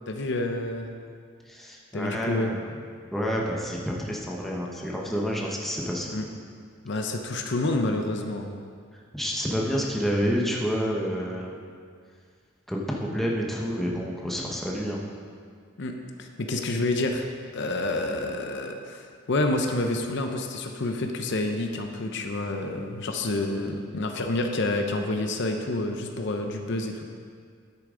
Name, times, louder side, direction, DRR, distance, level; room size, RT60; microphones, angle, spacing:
voice 1, 0.1-0.9 1.9-2.5 6.1-6.3 6.8-8.5 15.8-17.3 17.5-27.0, left 2 dB, 60° left, 4 dB, 0.7 m, -28 dB
voice 2, 1.5-2.7 3.1-6.1 9.1-11.6 12.7-15.0 23.4-23.8, equal, ahead, -3 dB, 1.0 m, -29 dB
10.0 x 8.4 x 3.8 m, 2.1 s
head